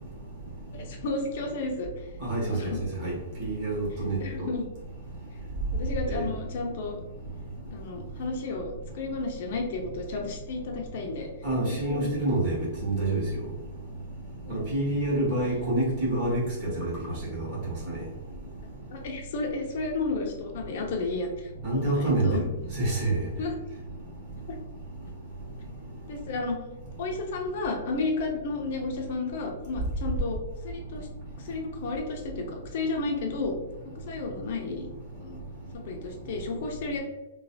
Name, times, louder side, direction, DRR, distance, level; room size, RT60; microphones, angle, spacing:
voice 1, 0.7-1.9 2.5-2.8 4.2-4.7 5.7-7.0 7.7-11.3 11.6-12.1 14.4-14.6 18.9-22.4 23.4-23.5 24.5-24.6 26.1-26.6 27.0-30.4 30.6-31.1 31.4-33.6 34.1-34.9 35.2-35.4 35.8-37.0, left 3 dB, 50° left, 2 dB, 0.4 m, -32 dB
voice 2, 2.2-2.7 3.0-3.1 3.4-4.2 6.1-6.2 11.4-13.3 14.5-16.9 17.3-17.5 17.9-18.0 21.6-22.4 22.7-23.2, right 2 dB, 35° right, -7 dB, 1.4 m, -27 dB
3.1 x 2.2 x 2.6 m, 1.1 s
hypercardioid pair, 170°, 0 cm